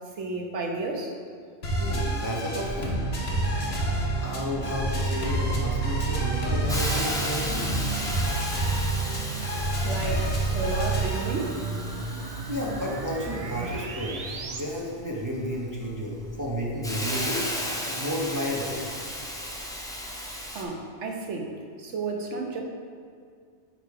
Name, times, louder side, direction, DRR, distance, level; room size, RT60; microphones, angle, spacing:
voice 1, 0.2-1.1 9.8-11.6 20.5-22.6, right 3 dB, 80° right, 1 dB, 1.2 m, -32 dB
sound 1, 1.6-11.2, right 1 dB, 65° left, 1.3 m, -28 dB
voice 2, 1.8-3.0 4.2-7.7 12.5-17.5 18.0-18.8 19.5-19.6, equal, 15° right, -4 dB, 0.9 m, -32 dB
sound 2, 2.6-14.6, right 4 dB, 50° right, 0.5 m, -35 dB
Hiss, 6.7-20.6, equal, 5° left, 0.5 m, -35 dB
9.1 x 3.5 x 4.8 m, 2.1 s
omnidirectional pair, 1.2 m